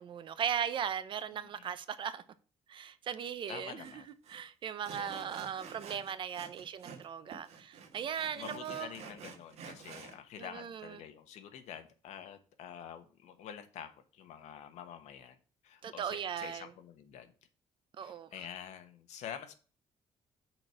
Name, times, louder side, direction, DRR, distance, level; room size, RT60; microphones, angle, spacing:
voice 1, 0.0-2.2 2.7-4.0 4.3-8.9 10.4-11.0 15.8-16.7 18.0-18.3, right 8 dB, 45° right, 0.7 m, -38 dB
voice 2, 3.5-4.1 5.0-5.4 8.3-15.4 15.6-17.3 18.0-19.5, left 9 dB, 75° left, 1.1 m, -47 dB
Sawing, 3.8-3.9 4.2-4.4 4.8-7.1 7.3-10.2, right 6 dB, 65° right, 1.5 m, -49 dB
6.1 x 4.5 x 6.3 m
cardioid pair, 165°, 12 cm